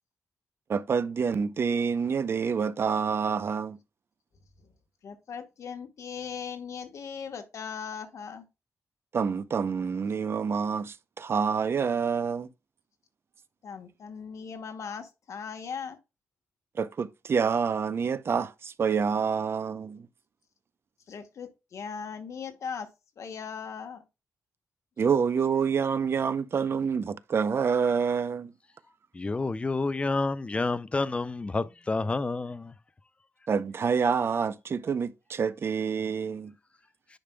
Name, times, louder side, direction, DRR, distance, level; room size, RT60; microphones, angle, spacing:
voice 1, 0.7-3.8 9.1-12.5 16.7-20.1 25.0-28.5 33.5-36.5, right 6 dB, 50° right, 0.5 m, -27 dB
voice 2, 5.0-8.5 13.6-16.0 21.1-22.9 23.2-24.0, left 6 dB, 70° left, 1.2 m, -39 dB
voice 3, 29.2-32.7, left 3 dB, 20° left, 0.4 m, -29 dB
10.0 x 5.2 x 2.2 m
wide cardioid pair, 125°, 5 cm